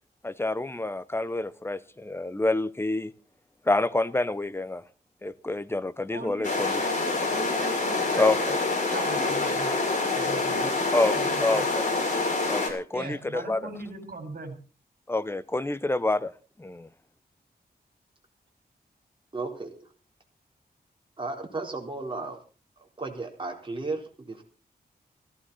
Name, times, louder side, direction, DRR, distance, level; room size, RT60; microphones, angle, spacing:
voice 1, 0.2-3.1 3.7-4.8 5.2-6.8 8.2-8.6 10.9-11.2 11.4-12.0 12.5-13.6 15.1-16.3 16.6-16.9, left 2 dB, 15° left, 0.9 m, -27 dB
voice 2, 6.1-6.5 7.3-11.6 12.9-14.6, right 3 dB, 60° right, 4.2 m, -40 dB
sound 1, 6.4-12.7, left 3 dB, 45° left, 6.4 m, -26 dB
voice 3, 19.3-19.9 21.2-22.4 23.0-24.4, right 3 dB, 30° right, 4.1 m, -34 dB
16.5 x 16.0 x 4.2 m
wide cardioid pair, 85°, 17 cm